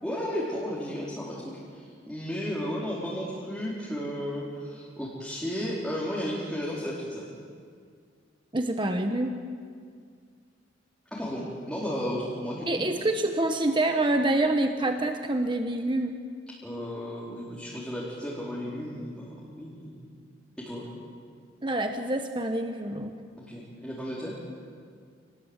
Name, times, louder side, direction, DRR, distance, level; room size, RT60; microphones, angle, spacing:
voice 1, 0.0-7.3 11.1-12.7 16.6-20.0 20.6-20.9 23.4-24.4, equal, 5° left, -7 dB, 4.5 m, -34 dB
voice 2, 8.5-9.4 12.7-16.2 21.6-23.2, right 2 dB, 25° right, 5 dB, 1.1 m, -26 dB
28.5 x 20.5 x 8.2 m, 2.1 s
head